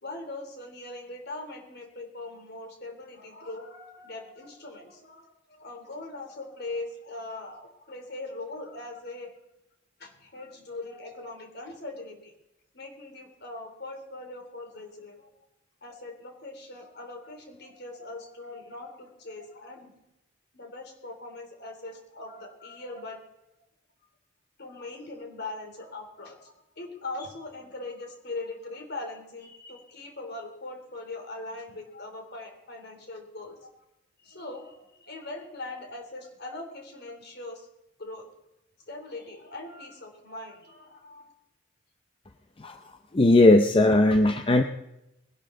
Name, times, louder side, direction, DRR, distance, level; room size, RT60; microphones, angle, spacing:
voice 1, 0.0-9.3 10.0-12.3 12.7-15.3 15.8-19.9 20.5-23.2 24.6-33.7 34.2-37.7 38.0-38.3 38.9-41.3, left 2 dB, 55° left, 3 dB, 3.2 m, -41 dB
voice 2, 43.1-44.6, left 2 dB, 25° left, 7 dB, 0.6 m, -18 dB
20.5 x 11.5 x 3.8 m, 0.89 s
head